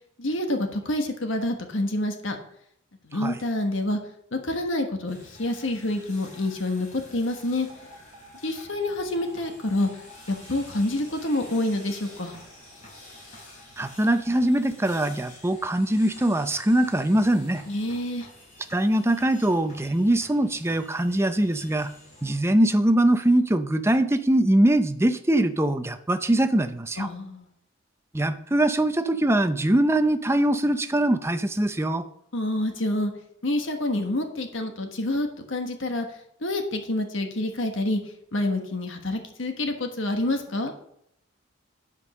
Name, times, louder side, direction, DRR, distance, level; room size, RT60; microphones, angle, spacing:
voice 1, 0.2-2.4 3.1-4.0 4.3-7.7 8.4-9.9 10.3-12.4 17.7-18.3 27.0-27.5 32.3-33.1 33.4-36.1 36.4-38.0 38.3-40.7, left 1 dB, 65° left, 5 dB, 1.3 m, -27 dB
sound 1, 5.1-22.4, left 1 dB, 35° left, 4.7 m, -49 dB
Alarm, 7.7-15.7, right 1 dB, 35° right, 1.7 m, -53 dB
voice 2, 13.8-17.6 18.7-21.9 22.2-27.1 28.1-32.1, right 1 dB, 10° right, 10 dB, 0.5 m, -22 dB
11.0 x 5.3 x 6.5 m, 0.74 s
head